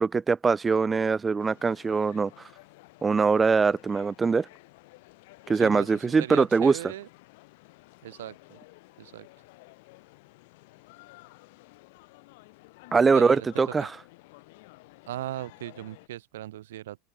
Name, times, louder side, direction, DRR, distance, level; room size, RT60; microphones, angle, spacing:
voice 1, 0.0-2.3 3.0-4.5 5.5-6.8 12.9-13.9, right 5 dB, 15° right, 0.4 m, -22 dB
sound 1, 1.4-16.1, left 23 dB, 70° left, 2.5 m, -53 dB
voice 2, 5.5-7.1 8.0-8.6 9.0-9.3 13.1-13.5 15.1-17.0, right 14 dB, 85° right, 1.2 m, -38 dB
open air
supercardioid pair, 120°, 0 cm